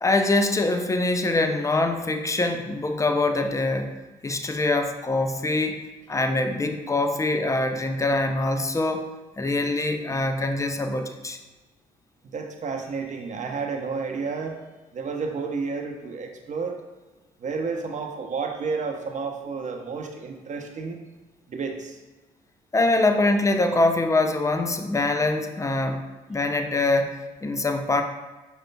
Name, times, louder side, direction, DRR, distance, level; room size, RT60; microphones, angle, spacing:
voice 1, 0.0-3.9 4.2-9.0 9.4-11.4 22.7-26.0 26.3-28.0, left 2 dB, 15° left, 6 dB, 0.5 m, -24 dB
voice 2, 12.2-14.6 14.9-16.8 17.4-21.0 21.5-22.0, right 4 dB, 40° right, 3 dB, 0.8 m, -31 dB
5.1 x 4.4 x 2.2 m, 1.1 s
hypercardioid pair, 55°, 19 cm